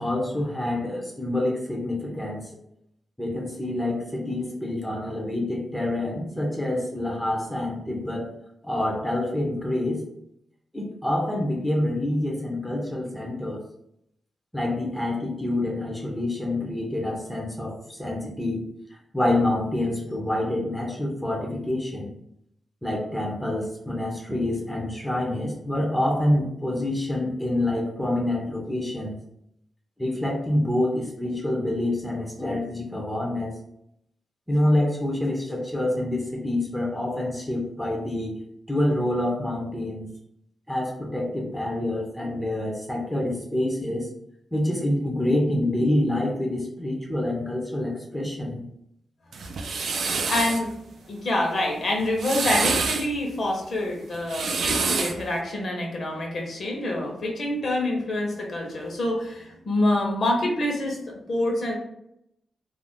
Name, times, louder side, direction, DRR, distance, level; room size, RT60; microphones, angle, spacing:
voice 1, 0.0-2.4 3.2-8.3 8.6-10.0 10.7-13.6 14.5-18.7 19.1-22.1 22.8-29.2 30.0-33.6 34.5-38.3 38.7-40.1 40.7-44.1 44.5-48.6, left 1 dB, 5° left, -3 dB, 0.5 m, -27 dB
sound 1, 49.3-50.6 52.0-53.1 54.1-55.2, right 4 dB, 70° right, 0.3 m, -26 dB
voice 2, 50.3-50.7 51.1-61.7, left 1 dB, 50° left, 0 dB, 0.8 m, -26 dB
2.4 x 2.0 x 3.5 m, 0.77 s
wide cardioid pair, 150°, 0 cm